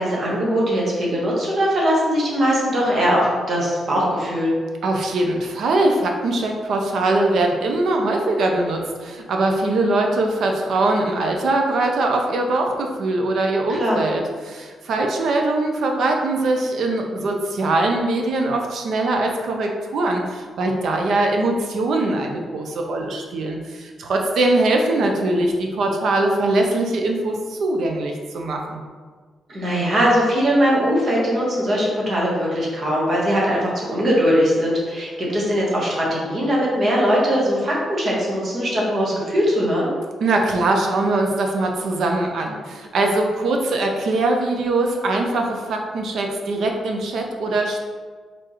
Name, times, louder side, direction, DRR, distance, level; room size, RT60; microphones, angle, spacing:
voice 1, 0.0-4.5 13.8-14.0 29.5-39.9, equal, 35° right, -5 dB, 1.2 m, -20 dB
voice 2, 4.8-28.8 40.2-47.8, right 2 dB, 65° right, 2 dB, 0.6 m, -22 dB
4.8 x 3.6 x 3.0 m, 1.5 s
wide cardioid pair, 165°, 0 cm